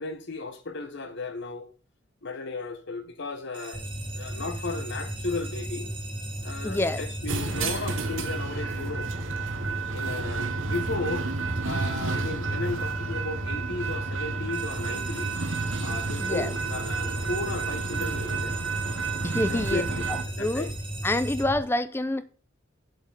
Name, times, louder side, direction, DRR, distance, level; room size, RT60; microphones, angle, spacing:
voice 1, 0.0-1.7 2.2-3.9 4.1-5.9 6.4-9.1 9.9-11.3 11.6-15.4 15.8-18.6 19.5-20.7, left 3 dB, 65° left, 1.1 m, -35 dB
sound 1, 3.5-8.4 14.5-21.4, right 3 dB, 25° right, 1.9 m, -43 dB
sound 2, 3.7-21.6, equal, 10° right, 2.0 m, -36 dB
voice 2, 6.6-7.0 16.2-16.5 19.2-19.8 20.1-20.7 21.0-22.2, left 1 dB, 10° left, 0.4 m, -27 dB
sound 3, 7.3-20.2, right 4 dB, 70° right, 1.1 m, -31 dB
7.7 x 7.3 x 4.0 m
head